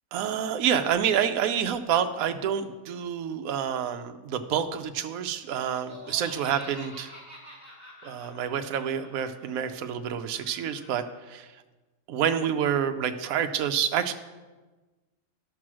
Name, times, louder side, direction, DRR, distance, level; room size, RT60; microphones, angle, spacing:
voice 1, 0.1-7.1 8.0-11.5 12.1-14.1, right 8 dB, 75° right, 8 dB, 1.1 m, -28 dB
Laughter, 5.5-11.1, equal, 10° left, 3.6 m, -47 dB
12.5 x 6.0 x 6.2 m, 1.2 s
omnidirectional pair, 1.5 m